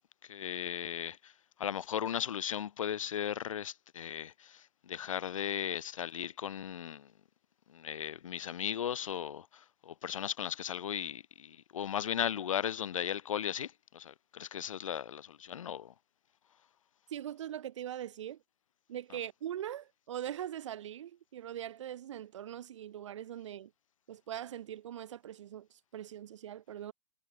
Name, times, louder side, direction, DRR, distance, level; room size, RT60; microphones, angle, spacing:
voice 1, 0.3-1.3 1.6-7.1 7.7-15.9, left 9 dB, 70° left, 0.5 m, -37 dB
voice 2, 17.1-18.4 18.9-23.7 24.1-26.9, right 11 dB, 60° right, 1.1 m, -41 dB
figure-of-eight pair, 115°, 18 cm